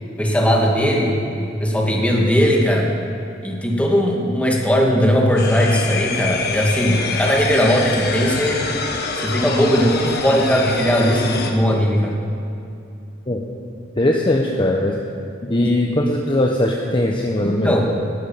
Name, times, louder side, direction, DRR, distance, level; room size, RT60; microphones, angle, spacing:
voice 1, 0.2-2.9 3.4-8.6 9.2-12.1 17.4-17.9, equal, 5° left, -1 dB, 2.3 m, -18 dB
sound 1, 5.4-11.5, left 4 dB, 55° left, 1.5 m, -25 dB
voice 2, 14.0-14.9 15.4-17.9, left 1 dB, 25° left, 0 dB, 1.0 m, -19 dB
19.5 x 12.0 x 5.8 m, 2.6 s
head